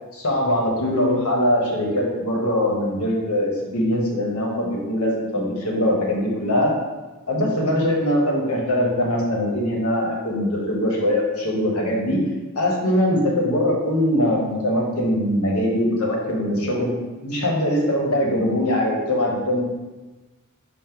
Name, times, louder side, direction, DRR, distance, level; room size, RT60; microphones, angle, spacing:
voice 1, 0.1-6.7 7.3-12.2 12.5-16.9 17.2-19.6, left 1 dB, 85° left, -2 dB, 1.1 m, -22 dB
5.4 x 2.1 x 4.5 m, 1.2 s
head